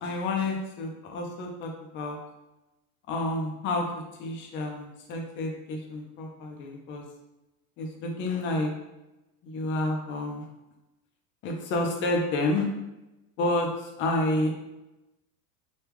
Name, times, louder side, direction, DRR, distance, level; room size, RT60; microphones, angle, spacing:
voice 1, 0.0-2.2 3.1-3.8 4.2-7.0 7.8-8.7 9.4-10.5 11.4-12.7 13.4-14.5, left 2 dB, 25° left, 1 dB, 0.4 m, -29 dB
3.5 x 2.3 x 3.0 m, 0.99 s
supercardioid pair, 140°, 48 cm